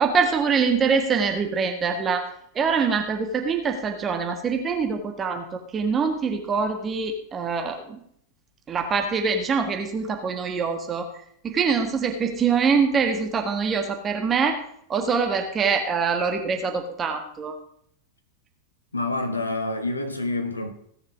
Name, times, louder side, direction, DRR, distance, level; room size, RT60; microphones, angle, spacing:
voice 1, 0.0-2.3 2.5-8.0 8.7-11.1 11.4-14.6 14.9-17.5, right 5 dB, 25° right, 1.6 m, -24 dB
voice 2, 18.9-20.7, left 2 dB, 80° left, 1.5 m, -27 dB
17.0 x 6.7 x 5.0 m
figure-of-eight pair, 90°, 0 cm